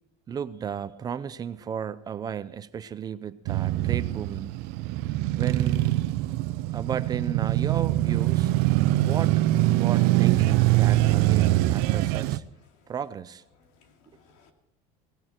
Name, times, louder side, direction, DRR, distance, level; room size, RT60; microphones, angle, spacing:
voice 1, 0.3-4.6 5.4-5.9 6.7-8.5 9.0-9.4 9.7-12.4 12.9-13.4, right 7 dB, 25° right, 0.6 m, -34 dB
Male speech man speaking / Motorcycle / Idling, 3.5-12.4, right 16 dB, 70° right, 0.7 m, -23 dB
voice 2, 13.5-14.5, left 5 dB, 85° left, 2.8 m, -61 dB
18.0 x 15.5 x 4.5 m
cardioid pair, 160°, 17 cm